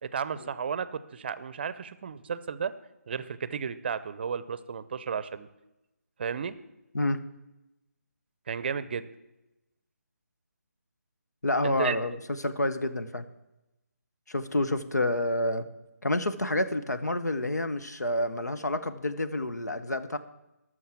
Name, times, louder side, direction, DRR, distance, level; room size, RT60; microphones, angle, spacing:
voice 1, 0.0-2.7 3.1-5.5 6.2-6.6 8.5-9.1 11.6-12.0, right 6 dB, 40° right, 15 dB, 0.6 m, -33 dB
voice 2, 11.4-13.2 14.3-15.7 16.0-20.2, left 1 dB, 90° left, 11 dB, 1.0 m, -28 dB
12.5 x 6.3 x 7.4 m, 0.97 s
figure-of-eight pair, 155°, 9 cm